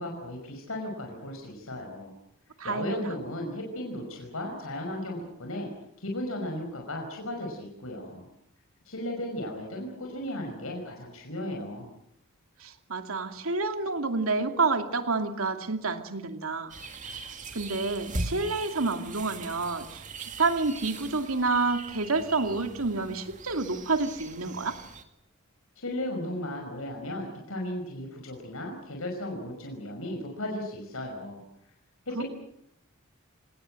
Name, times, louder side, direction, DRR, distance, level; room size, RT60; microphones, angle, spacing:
voice 1, 0.0-2.1 2.6-5.7 6.0-8.3 8.9-11.9 25.8-31.4 32.1-32.2, left 1 dB, 80° left, 2 dB, 5.5 m, -35 dB
voice 2, 2.6-3.0 12.6-16.7 17.0-17.2 17.5-24.7 32.2-32.3, right 3 dB, 80° right, 6 dB, 2.5 m, -29 dB
sound 1, 16.7-25.0, right 2 dB, 35° right, 2.2 m, -40 dB
28.5 x 19.0 x 7.8 m, 0.75 s
head